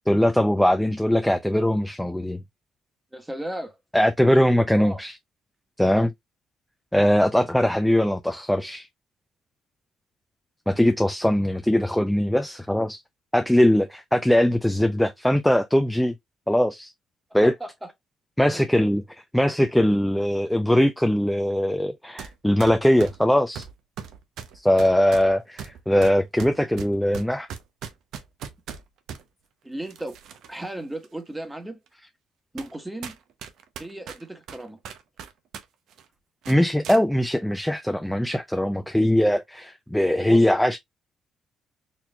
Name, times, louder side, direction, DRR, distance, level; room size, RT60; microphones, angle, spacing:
voice 1, 0.1-2.4 3.9-5.1 5.8-6.1 6.9-8.9 10.7-13.0 13.3-16.1 16.5-16.9 17.3-17.5 18.4-19.0 19.3-23.7 24.5-27.5 36.5-40.8, left 1 dB, 5° left, 0.4 m, -21 dB
voice 2, 3.1-3.8 4.7-5.0 17.4-17.9 18.5-18.7 29.6-30.2 30.5-31.8 32.5-33.2 33.8-34.8 40.2-40.5, right 1 dB, 10° right, 1.2 m, -35 dB
sound 1, 22.2-22.3 22.6-29.2 29.9-30.6 31.0-31.1 31.9-32.0 32.6-32.8 33.0-35.6 35.9-36.1 36.4-37.0, right 8 dB, 75° right, 0.7 m, -39 dB
4.3 x 2.9 x 2.2 m
supercardioid pair, 70°, 0 cm